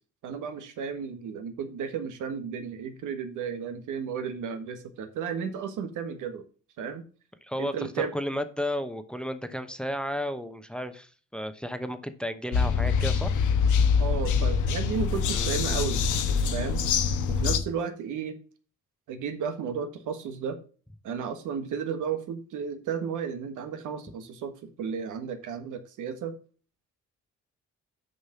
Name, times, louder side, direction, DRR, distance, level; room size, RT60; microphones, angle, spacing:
voice 1, 0.2-6.4 6.8-7.0 7.6-8.1 14.0-16.8 17.3-18.4 19.1-20.6 21.0-26.4, right 6 dB, 85° right, 8 dB, 1.4 m, -33 dB
voice 2, 7.4-13.3 15.3-15.6, equal, 5° left, 9 dB, 0.9 m, -33 dB
sound 1, 12.5-17.6, left 6 dB, 80° left, 1.1 m, -24 dB
6.7 x 5.5 x 5.7 m, 0.38 s
cardioid pair, 90°, 30 cm